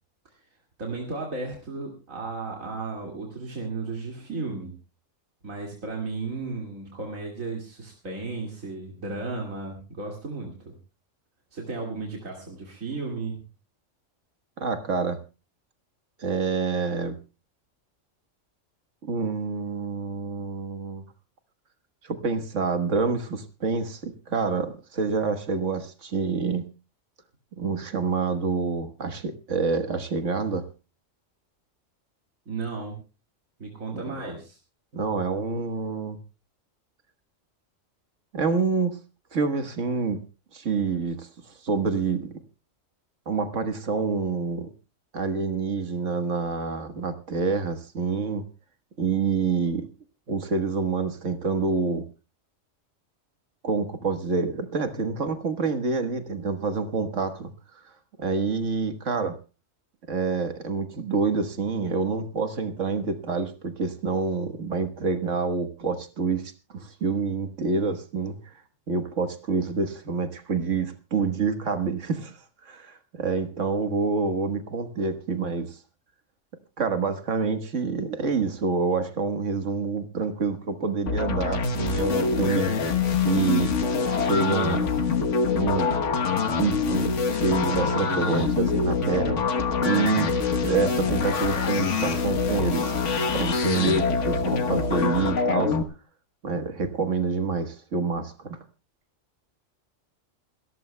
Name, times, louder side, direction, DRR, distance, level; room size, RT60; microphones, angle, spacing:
voice 1, 0.8-4.7 5.4-10.7 11.5-13.4 32.5-33.0 33.6-34.6, right 3 dB, 90° right, 1 dB, 2.7 m, -34 dB
voice 2, 14.6-15.2 16.2-17.2 19.0-21.0 22.0-26.7 27.5-30.6 33.9-34.0 34.9-36.2 38.3-39.0 39.3-40.2 40.5-42.3 43.3-44.7 45.1-48.4 49.0-49.9 50.3-52.0 53.6-57.5 58.2-59.4 60.1-68.5 68.9-72.4 72.6-75.8 76.8-82.7 83.2-83.7 84.2-84.9 85.5-85.9 86.2-89.4 89.8-90.3 90.6-92.9 93.3-95.8 96.4-98.6, right 4 dB, 70° right, 8 dB, 1.7 m, -27 dB
sound 1, 81.1-95.8, left 5 dB, 65° left, 1.5 m, -25 dB
28.0 x 14.0 x 2.2 m, 0.32 s
omnidirectional pair, 1.3 m